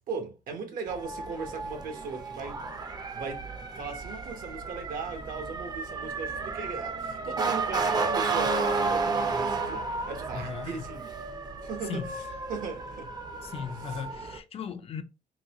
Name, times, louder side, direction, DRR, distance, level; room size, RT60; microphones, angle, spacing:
voice 1, 0.1-2.8 3.1-3.5 3.7-11.1 11.6-12.2 12.5-13.1 13.9-14.0, right 5 dB, 70° right, 1.0 m, -38 dB
Motor vehicle (road) / Siren, 0.9-14.4, right 4 dB, 25° right, 0.5 m, -32 dB
voice 2, 10.3-10.8 11.9-12.1 13.4-15.0, left 7 dB, 40° left, 0.4 m, -37 dB
3.8 x 2.2 x 2.8 m
cardioid pair, 115°, 15 cm